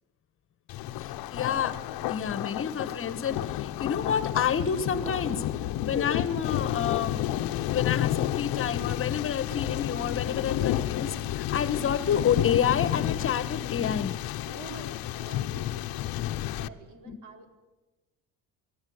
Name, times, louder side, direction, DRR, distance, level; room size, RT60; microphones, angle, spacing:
Thunder, 0.7-16.7, left 13 dB, 80° left, 1.1 m, -31 dB
voice 1, 1.0-1.8 2.1-7.2 7.7-14.1 17.1-17.2, left 8 dB, 40° left, 12 dB, 1.6 m, -29 dB
voice 2, 14.4-17.6, right 3 dB, 60° right, 5 dB, 4.8 m, -48 dB
29.5 x 19.5 x 9.7 m, 1.1 s
cardioid pair, 150°, 35 cm